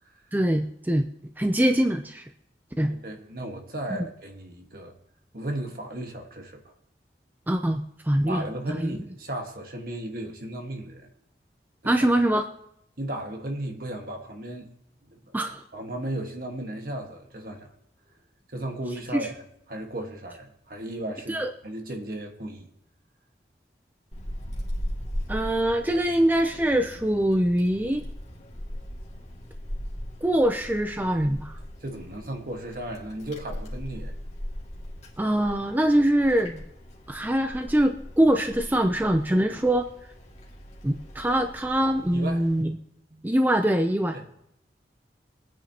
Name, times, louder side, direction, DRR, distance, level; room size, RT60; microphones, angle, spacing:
voice 1, 0.3-1.1 1.4-2.3 2.8-2.9 7.5-9.0 11.8-12.5 15.3-15.6 19.1-19.2 21.3-21.5 25.3-28.0 30.2-31.6 35.2-36.7 37.1-39.9 40.8-42.8 43.2-44.2, right 1 dB, 10° right, 0.4 m, -23 dB
voice 2, 2.8-4.9 5.3-6.6 8.3-11.1 11.8-12.0 13.0-14.7 15.1-15.3 15.7-17.7 18.5-19.3 19.7-22.7 31.8-34.1 42.1-42.5 43.1-43.3 44.1-44.3, right 1 dB, 55° right, 1.5 m, -35 dB
Wind, 24.1-42.6, equal, 40° left, 2.1 m, -39 dB
23.0 x 9.1 x 2.9 m
head